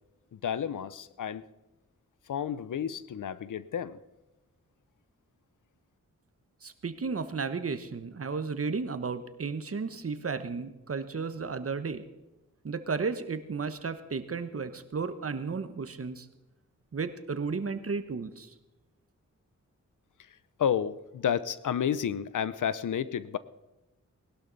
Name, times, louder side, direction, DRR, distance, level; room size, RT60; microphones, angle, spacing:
voice 1, 0.3-1.4 2.3-4.0 20.2-23.4, left 8 dB, 80° left, 16 dB, 0.7 m, -31 dB
voice 2, 6.6-12.1 12.6-16.3 16.9-18.5, right 4 dB, 50° right, 11 dB, 1.1 m, -33 dB
19.5 x 12.0 x 4.1 m, 0.99 s
wide cardioid pair, 75°, 30 cm